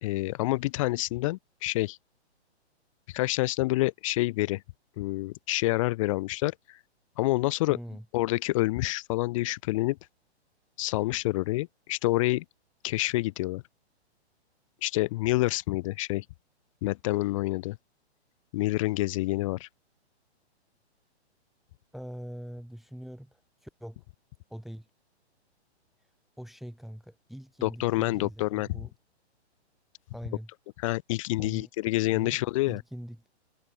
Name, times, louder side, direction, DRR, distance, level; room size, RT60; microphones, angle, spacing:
voice 1, 0.0-2.0 3.1-4.6 5.0-6.8 7.2-7.8 8.1-10.0 10.8-12.4 12.8-13.6 14.8-16.2 16.8-17.8 18.5-19.7 27.6-28.8 30.8-32.8, left 19 dB, 30° left, 0.8 m, -28 dB
voice 2, 7.7-8.0 21.9-24.0 24.5-24.9 26.4-28.9 30.1-30.5 31.4-31.7 32.0-32.4 32.7-33.3, equal, ahead, 1.9 m, -42 dB
hypercardioid pair, 145°, 34 cm